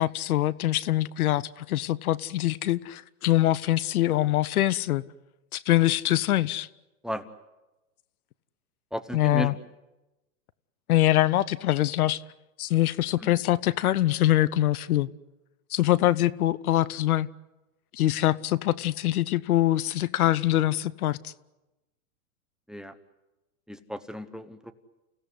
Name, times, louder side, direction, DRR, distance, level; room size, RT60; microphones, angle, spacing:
voice 1, 0.0-5.0 5.5-6.7 9.1-9.5 10.9-12.2 12.6-15.1 15.7-17.3 17.9-21.3, left 14 dB, 70° left, 0.9 m, -24 dB
voice 2, 8.9-9.6 13.2-13.3 22.7-22.9 23.7-24.7, equal, ahead, 0.9 m, -35 dB
29.5 x 16.5 x 9.6 m
hypercardioid pair, 130°, 45 cm